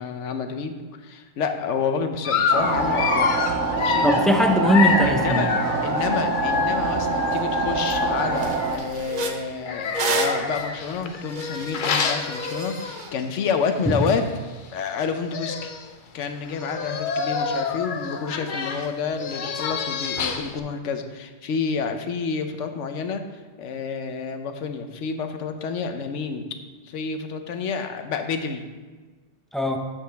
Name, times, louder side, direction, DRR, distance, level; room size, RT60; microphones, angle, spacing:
voice 1, 0.0-3.3 3.7-4.1 5.0-5.5 5.8-14.2 14.7-15.7 16.1-23.2 23.6-26.5 26.8-28.7, left 5 dB, 80° left, 7 dB, 1.1 m, -29 dB
Dog, 2.2-8.8 9.6-13.2 13.6-13.8 14.1-14.2 15.0-15.1 15.3-15.9 16.5-20.6, left 5 dB, 55° left, 0.7 m, -27 dB
sound 1, 2.5-8.8, right 5 dB, 90° right, 1.2 m, -26 dB
voice 2, 3.7-5.5 13.9-14.0 29.5-29.8, equal, ahead, 3 dB, 0.4 m, -20 dB
sound 2, 7.3-7.4 7.8-8.0 8.3-13.1, right 2 dB, 45° right, 0.7 m, -31 dB
8.7 x 7.3 x 3.4 m, 1.3 s
omnidirectional pair, 1.2 m